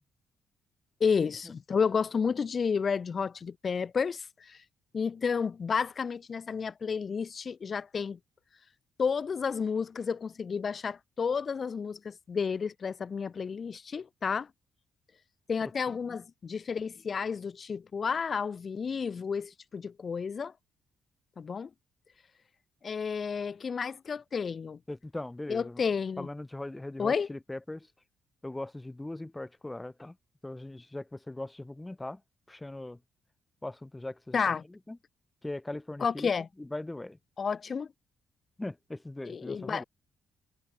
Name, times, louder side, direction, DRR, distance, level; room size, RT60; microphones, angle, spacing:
voice 1, 1.0-4.6 4.9-8.2 9.0-14.5 15.5-20.5 21.4-21.7 22.8-24.8 25.5-26.3 27.0-27.3 34.3-34.6 36.0-36.5 37.4-37.9 39.2-39.8, left 6 dB, 45° left, 3.6 m, -31 dB
voice 2, 24.9-25.8 26.2-27.9 28.4-30.2 30.4-32.2 32.5-33.0 33.6-34.4 34.7-35.0 35.4-36.3 36.6-37.2 38.6-39.8, left 2 dB, 15° left, 4.2 m, -40 dB
cardioid pair, 90°, 0 cm